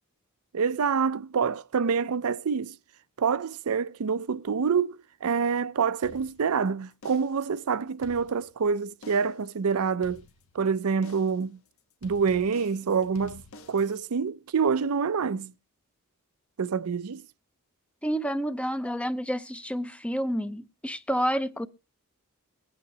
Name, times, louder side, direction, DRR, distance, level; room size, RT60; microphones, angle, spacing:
voice 1, 0.5-2.8 3.2-10.2 10.5-11.6 12.0-13.4 13.7-15.5 16.6-17.2, right 6 dB, 70° right, 0.5 m, -26 dB
sound 1, 6.0-6.7 7.0-7.5 7.9-8.7 9.0-9.5 10.0-10.7 11.0-11.5 12.0-14.0, left 2 dB, 65° left, 1.3 m, -50 dB
voice 2, 18.0-21.7, equal, 5° left, 0.6 m, -29 dB
22.5 x 8.8 x 2.8 m
head